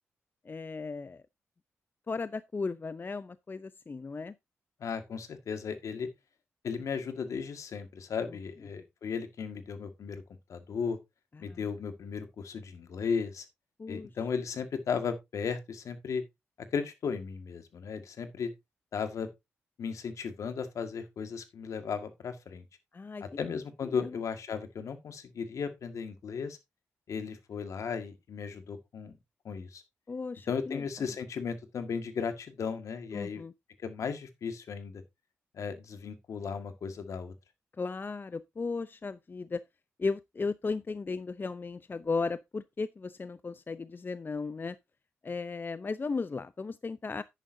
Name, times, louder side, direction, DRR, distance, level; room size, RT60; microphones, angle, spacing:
voice 1, 0.4-1.2 2.1-4.3 11.3-11.6 13.8-14.1 22.9-23.2 23.5-24.2 30.1-31.1 33.1-33.5 37.8-39.6 40.0-44.8 45.2-47.2, left 4 dB, 40° left, 0.6 m, -36 dB
voice 2, 4.8-6.1 6.6-10.2 10.5-11.0 11.4-13.5 13.9-16.2 16.7-18.5 18.9-19.3 19.8-22.6 23.2-26.6 27.1-29.1 29.5-29.8 30.5-33.4 33.8-35.0 35.5-37.3, left 6 dB, 70° left, 1.8 m, -35 dB
10.5 x 9.1 x 2.7 m
supercardioid pair, 45°, 6 cm